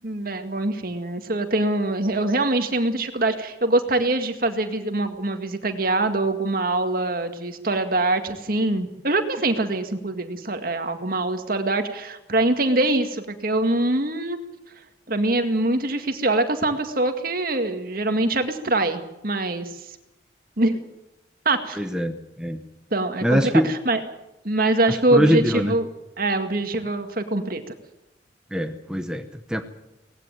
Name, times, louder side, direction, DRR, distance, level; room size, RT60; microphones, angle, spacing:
voice 1, 0.0-14.4 15.1-19.7 20.6-20.8 21.5-21.8 22.9-24.0 24.4-25.9 26.2-27.6, right 2 dB, 50° right, 7 dB, 2.0 m, -23 dB
voice 2, 21.7-22.6 23.2-23.7 25.1-25.7 28.5-29.6, equal, 5° right, 5 dB, 1.0 m, -23 dB
19.0 x 16.0 x 9.1 m, 0.93 s
head